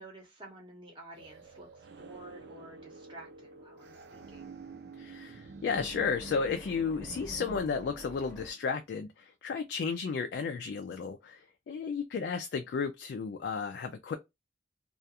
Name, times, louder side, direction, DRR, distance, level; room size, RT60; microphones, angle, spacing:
voice 1, 0.0-4.6, right 2 dB, 30° right, 0.7 m, -51 dB
sound 1, 1.1-7.6, right 4 dB, 80° right, 0.5 m, -48 dB
sound 2, 3.3-8.9, equal, 10° left, 0.7 m, -51 dB
voice 2, 5.0-14.2, left 5 dB, 75° left, 0.3 m, -33 dB
2.4 x 2.3 x 2.7 m
head